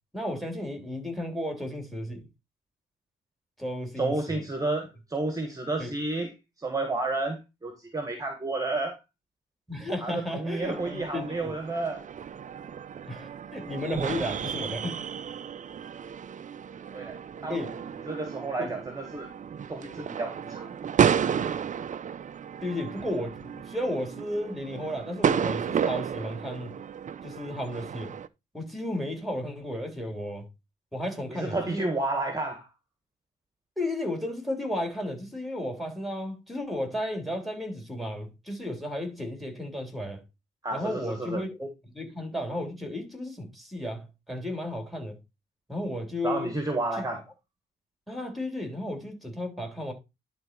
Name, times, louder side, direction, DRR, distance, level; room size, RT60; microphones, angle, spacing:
voice 1, 0.1-2.3 3.6-4.4 5.8-5.9 9.7-11.5 13.0-15.0 17.5-17.7 18.6-18.7 22.6-26.7 27.2-28.1 28.5-30.5 30.9-31.9 33.8-40.2 40.7-41.7 41.9-45.2 45.7-46.5 47.0-47.1 48.1-49.9, left 1 dB, ahead, 3.3 m, -33 dB
voice 2, 4.0-9.0 10.0-12.0 16.9-17.7 18.0-19.3 19.7-20.8 31.3-32.7 40.6-41.4 46.2-47.2, right 2 dB, 15° right, 1.6 m, -31 dB
sound 1, 10.6-28.3, right 8 dB, 40° right, 0.6 m, -32 dB
11.0 x 4.0 x 4.5 m
cardioid pair, 90°, 20 cm